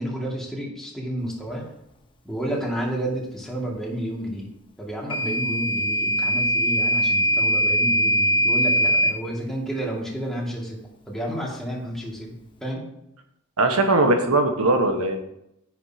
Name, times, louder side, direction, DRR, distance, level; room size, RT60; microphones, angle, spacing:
voice 1, 0.0-1.6 2.2-4.5 4.8-10.8 11.1-12.4 12.6-12.8, right 1 dB, ahead, -4 dB, 2.3 m, -30 dB
Microwave oven / Alarm, 5.1-9.2, equal, 25° left, 1.1 m, -21 dB
voice 2, 13.6-15.2, right 2 dB, 75° right, 5 dB, 1.4 m, -20 dB
10.0 x 9.6 x 2.9 m, 0.80 s
head